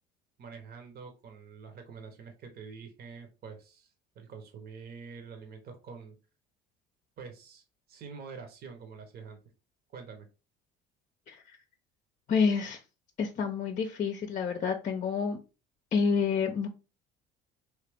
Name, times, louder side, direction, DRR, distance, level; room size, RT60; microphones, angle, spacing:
voice 1, 0.4-6.2 7.2-9.4 9.9-10.3, right 5 dB, 50° right, 5 dB, 1.0 m, -46 dB
voice 2, 12.3-12.8 13.2-15.4 15.9-16.7, left 5 dB, 40° left, 5 dB, 0.6 m, -28 dB
3.2 x 2.8 x 3.4 m, 0.32 s
supercardioid pair, 80°, 21 cm